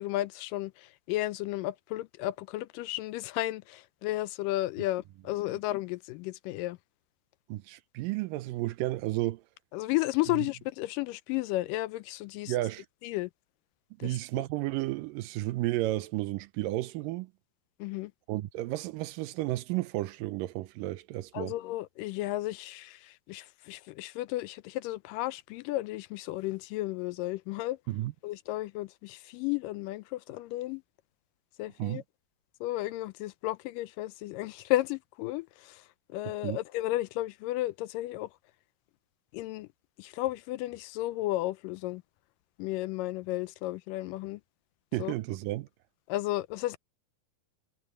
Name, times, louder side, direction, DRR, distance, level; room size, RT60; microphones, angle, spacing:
voice 1, 0.0-6.8 9.7-12.5 13.0-13.3 14.0-14.4 17.8-18.1 21.3-27.8 28.2-30.8 31.6-32.0 32.6-35.8 36.1-38.3 39.3-39.7 40.0-42.0 42.6-44.4 45.0-45.1 46.1-46.8, left 17 dB, 80° left, 2.1 m, -33 dB
voice 2, 7.5-9.4 10.3-10.4 12.5-12.9 14.0-17.3 18.3-21.5 27.9-28.1 31.8-32.0 36.2-36.6 44.9-45.7, right 17 dB, 85° right, 2.3 m, -32 dB
omnidirectional pair, 4.0 m